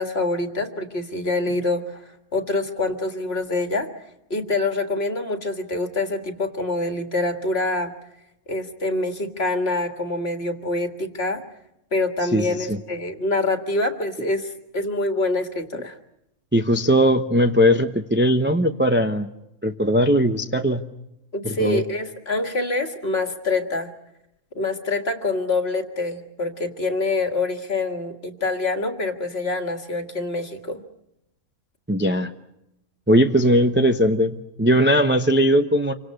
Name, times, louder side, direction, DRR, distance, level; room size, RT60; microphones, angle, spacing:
voice 1, 0.0-3.9 4.3-7.9 8.5-11.4 11.9-16.0 21.3-23.9 24.6-30.8, left 2 dB, 45° left, 7 dB, 2.0 m, -25 dB
voice 2, 12.3-12.8 16.5-19.3 19.6-20.8 21.4-21.8 31.9-32.3 33.1-35.9, equal, 10° right, 6 dB, 0.7 m, -19 dB
27.5 x 25.0 x 6.5 m, 0.85 s
omnidirectional pair, 1.5 m